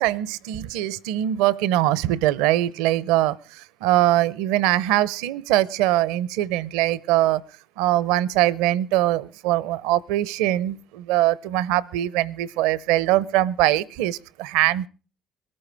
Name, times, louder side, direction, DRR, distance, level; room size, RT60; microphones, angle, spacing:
voice 1, 0.0-7.4 7.8-14.9, right 14 dB, 75° right, 22 dB, 0.7 m, -22 dB
22.0 x 14.0 x 3.4 m, 0.35 s
hypercardioid pair, 55°, 0 cm